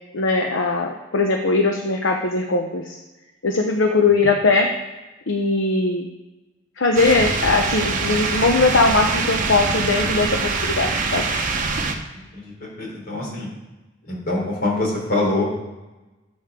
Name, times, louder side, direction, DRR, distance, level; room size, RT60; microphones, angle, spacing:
voice 1, 0.1-3.0 3.4-4.7 5.3-6.1 6.8-11.2, left 3 dB, 70° left, 2 dB, 0.9 m, -20 dB
sound 1, 6.9-11.9, right 4 dB, 45° right, 1.1 m, -24 dB
voice 2, 12.1-13.5 14.0-15.4, left 2 dB, 50° left, -3 dB, 3.8 m, -25 dB
13.5 x 7.2 x 3.7 m, 1.1 s
head